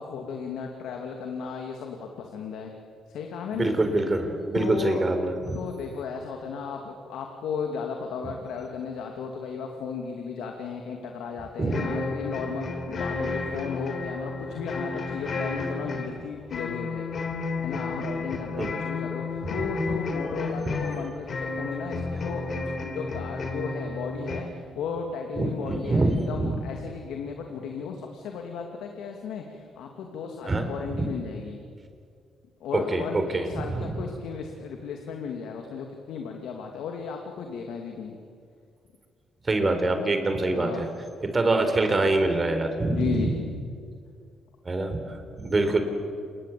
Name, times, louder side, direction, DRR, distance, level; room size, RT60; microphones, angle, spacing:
voice 1, 0.0-2.7 3.1-3.8 4.5-5.0 5.5-17.0 17.6-22.4 22.8-31.6 32.6-38.2 40.5-40.8 42.9-43.4, left 6 dB, 85° left, 3 dB, 2.6 m, -35 dB
voice 2, 3.5-5.6 11.6-11.8 18.6-18.7 19.4-19.6 25.4-26.6 30.5-31.1 32.9-33.5 33.7-34.0 39.4-40.9 41.2-43.3 44.6-45.8, right 2 dB, 30° right, 6 dB, 4.4 m, -25 dB
sound 1, 11.7-24.4, left 3 dB, 50° left, 4.1 m, -32 dB
28.0 x 22.0 x 8.6 m, 2.3 s
cardioid pair, 90°, 0 cm